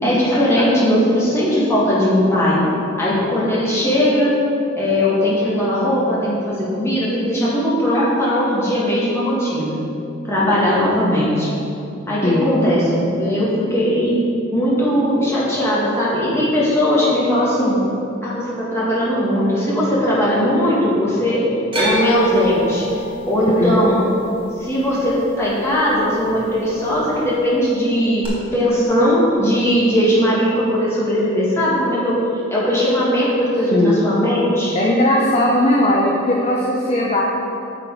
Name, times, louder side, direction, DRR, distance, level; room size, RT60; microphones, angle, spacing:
voice 1, 0.0-2.6 3.0-4.3 4.8-9.8 10.3-11.5 12.1-14.2 14.5-17.8 18.2-21.4 21.8-22.8 23.3-24.0 24.6-28.2 28.5-32.2 32.5-34.7, equal, 15° left, -8 dB, 2.2 m, -18 dB
voice 2, 3.1-3.5 12.2-12.5 23.5-23.8 33.7-34.0 34.7-37.2, left 1 dB, 30° left, -3 dB, 0.7 m, -18 dB
sound 1, 21.7-25.9 26.2-26.9 28.2-28.3, equal, 25° right, 1.6 m, -25 dB
8.7 x 6.7 x 4.9 m, 2.8 s
head